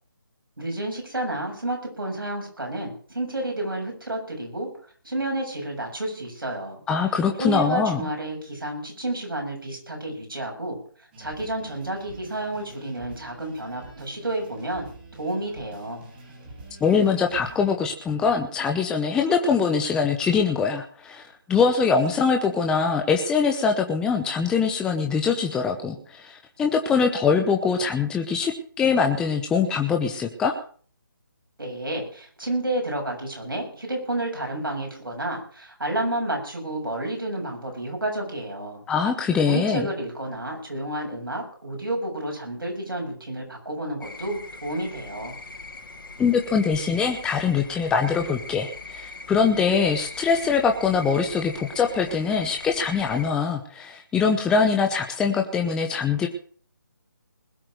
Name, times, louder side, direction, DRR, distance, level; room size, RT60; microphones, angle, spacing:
voice 1, 0.6-4.7 5.0-6.8 7.4-10.8 11.2-14.9 15.2-16.0 31.6-38.8 39.4-45.4, right 1 dB, 90° right, 1 dB, 7.4 m, -30 dB
voice 2, 6.9-8.0 16.8-21.2 21.5-30.5 38.9-39.9 46.2-56.3, left 5 dB, 5° left, 3 dB, 0.9 m, -23 dB
sound 1, 11.1-17.7, right 2 dB, 30° right, 5.3 m, -46 dB
sound 2, 44.0-53.3, left 3 dB, 75° left, 3.2 m, -41 dB
20.5 x 7.8 x 6.1 m, 0.44 s
figure-of-eight pair, 155°, 11 cm